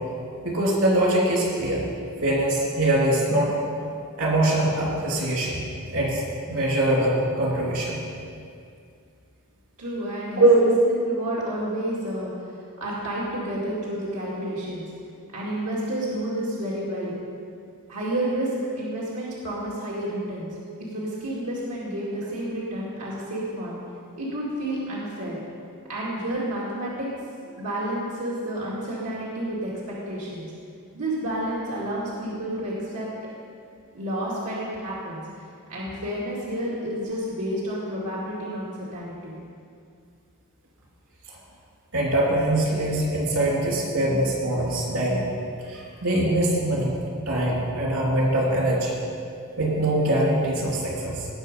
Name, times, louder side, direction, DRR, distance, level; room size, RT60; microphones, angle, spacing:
voice 1, 0.4-1.8 2.2-3.6 4.2-5.6 5.9-6.2 6.5-7.9 10.4-10.6 41.9-45.2 45.7-47.0 47.3-49.0 49.6-51.3, right 1 dB, 65° right, -3 dB, 3.0 m, -22 dB
voice 2, 9.8-12.3 12.8-14.9 15.3-17.1 17.9-20.6 20.9-23.8 24.2-25.4 25.9-27.1 27.6-30.5 30.9-33.1 33.9-35.2 35.7-39.4, right 1 dB, 90° right, -7 dB, 2.2 m, -30 dB
18.5 x 6.2 x 5.3 m, 2.3 s
head